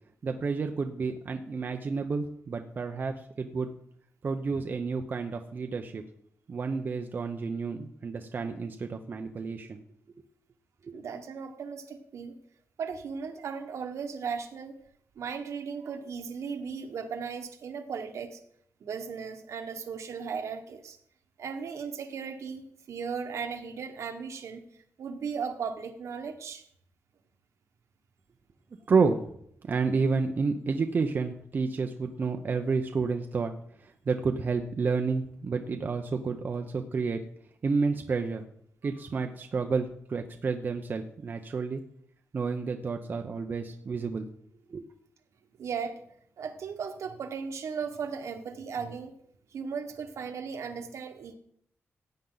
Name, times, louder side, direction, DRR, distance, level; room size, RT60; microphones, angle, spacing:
voice 1, 0.2-3.7 4.2-6.0 6.5-9.8 10.8-10.9 28.9-29.2 29.6-33.5 33.8-37.2 37.6-38.4 38.8-41.8 42.3-44.3 44.7-44.9, right 4 dB, 40° right, 5 dB, 0.7 m, -30 dB
voice 2, 10.9-12.3 12.8-14.8 15.1-18.4 18.8-21.0 21.4-26.6 45.6-46.0 46.4-49.1 49.5-51.3, right 6 dB, 75° right, 5 dB, 1.4 m, -36 dB
16.0 x 9.0 x 4.0 m, 0.67 s
wide cardioid pair, 170°, 5 cm